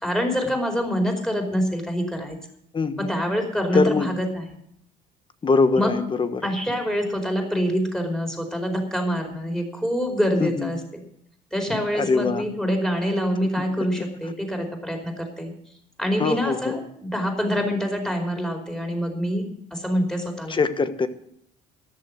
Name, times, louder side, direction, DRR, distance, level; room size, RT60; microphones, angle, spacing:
voice 1, 0.0-2.4 3.0-4.4 5.7-5.9 6.4-11.0 11.5-15.5 16.0-19.4 19.7-20.6, equal, 5° left, 3 dB, 4.7 m, -25 dB
voice 2, 2.7-3.1 3.7-4.1 5.4-6.5 10.4-10.7 11.9-12.5 16.2-16.8 20.5-21.1, left 4 dB, 30° left, 11 dB, 1.3 m, -22 dB
14.0 x 11.0 x 6.4 m, 0.72 s
cardioid pair, 110°, 17 cm